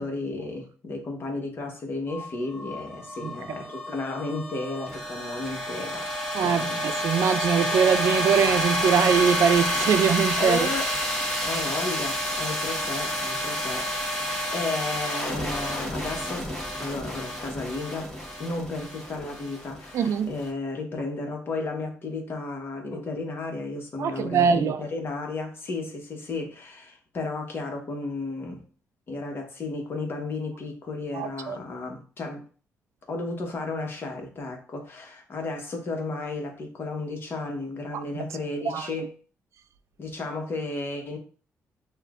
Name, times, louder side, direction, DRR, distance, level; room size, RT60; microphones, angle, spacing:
voice 1, 0.0-6.0 6.4-6.8 10.4-10.9 11.4-13.9 14.2-16.5 16.8-18.1 18.4-28.6 29.1-32.4 33.1-39.1 40.0-41.2, left 3 dB, 45° left, 1.2 m, -33 dB
sound 1, 2.1-20.4, equal, 10° left, 1.4 m, -29 dB
voice 2, 6.3-10.7 19.9-20.3 24.0-24.8 31.1-31.6 38.1-38.2 38.7-38.9, right 7 dB, 60° right, 0.4 m, -23 dB
6.6 x 2.5 x 2.5 m
cardioid pair, 110°, 6 cm